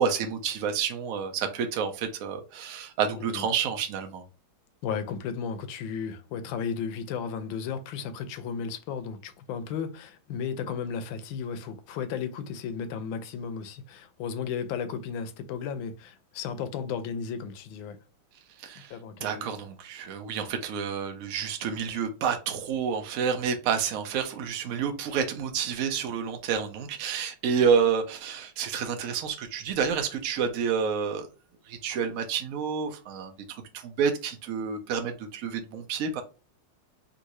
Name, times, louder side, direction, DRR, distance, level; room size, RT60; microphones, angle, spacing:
voice 1, 0.0-4.2 18.6-18.9 19.2-31.3 31.7-36.2, right 6 dB, 85° right, 0.7 m, -29 dB
voice 2, 4.8-18.0 18.9-19.5, left 6 dB, 80° left, 1.3 m, -34 dB
3.6 x 2.6 x 3.0 m
omnidirectional pair, 2.1 m